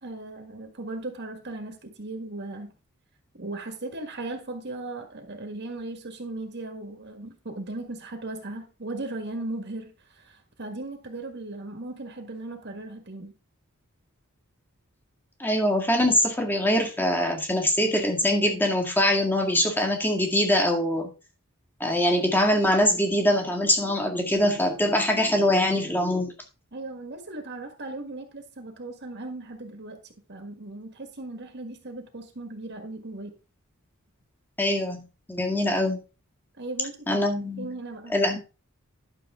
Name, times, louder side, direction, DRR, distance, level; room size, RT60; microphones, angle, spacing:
voice 1, 0.0-2.7 3.3-13.3 26.7-33.3 36.6-37.2 37.6-38.2, right 2 dB, 50° right, 5 dB, 1.6 m, -37 dB
voice 2, 15.4-21.1 21.8-26.3 34.6-36.0 37.1-37.7 38.1-38.4, left 1 dB, 10° left, 2 dB, 1.9 m, -23 dB
11.5 x 6.8 x 3.6 m, 0.32 s
head